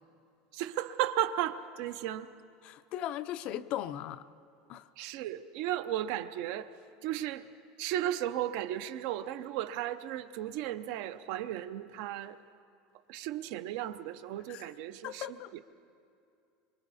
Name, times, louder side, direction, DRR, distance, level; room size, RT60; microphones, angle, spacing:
voice 1, 0.5-2.3 5.0-6.7 7.0-7.5 7.8-12.4 13.1-15.3 15.5-15.6, right 12 dB, 55° right, 12 dB, 0.7 m, -35 dB
voice 2, 2.6-4.3 4.7-4.9 14.5-14.7 15.0-15.5, left 12 dB, 35° left, 14 dB, 0.5 m, -38 dB
26.0 x 24.0 x 4.2 m, 2.5 s
cardioid pair, 175°, 3 cm